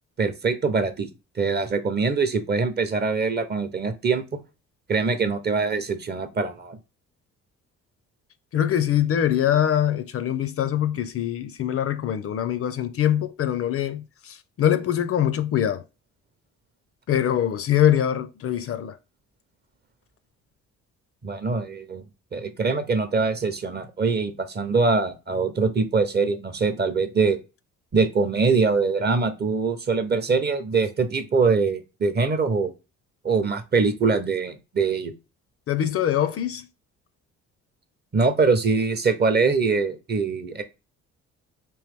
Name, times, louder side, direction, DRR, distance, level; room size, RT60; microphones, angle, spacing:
voice 1, 0.2-1.1 1.4-4.2 4.9-6.8 21.2-22.0 22.3-27.4 27.9-32.7 33.2-35.1 38.1-40.6, right 4 dB, 35° right, 0.7 m, -23 dB
voice 2, 8.5-15.8 17.1-19.0 35.7-36.7, left 10 dB, 50° left, 0.4 m, -23 dB
3.1 x 3.1 x 3.4 m
cardioid pair, 90°, 30 cm